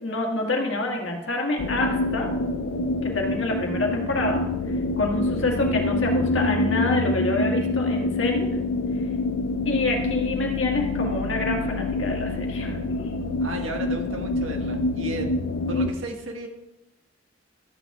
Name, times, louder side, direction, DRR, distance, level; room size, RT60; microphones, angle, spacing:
voice 1, 0.0-2.3 3.0-4.4 4.7-8.5 9.7-13.2, left 2 dB, 65° left, 0 dB, 1.7 m, -27 dB
sound 1, 1.6-15.9, left 2 dB, 85° left, 0.5 m, -26 dB
voice 2, 13.4-15.3 15.7-16.5, right 2 dB, 85° right, 2 dB, 1.5 m, -34 dB
13.0 x 9.2 x 2.4 m, 0.96 s
head